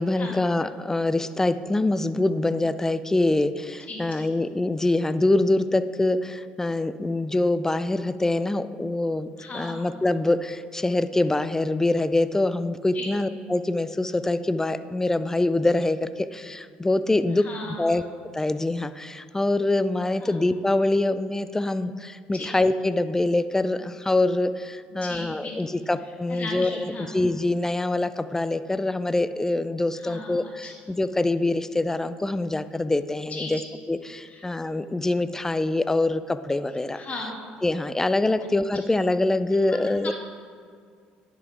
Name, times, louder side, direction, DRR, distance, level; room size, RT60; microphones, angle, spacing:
voice 1, 0.0-9.3 9.5-17.5 17.8-18.0 18.3-33.6 33.9-37.0 37.6-40.1, left 2 dB, 10° left, 13 dB, 0.4 m, -24 dB
voice 2, 3.9-4.3 9.4-9.8 12.9-13.1 17.3-18.0 20.2-20.4 22.3-22.5 24.9-25.9 26.3-27.1 29.9-30.7 33.3-33.6 34.3-34.5 36.9-37.4 38.4-38.5 39.7-39.8 40.0-40.1, left 2 dB, 40° left, -1 dB, 2.1 m, -37 dB
10.5 x 6.0 x 3.5 m, 2.1 s
hypercardioid pair, 65°, 4 cm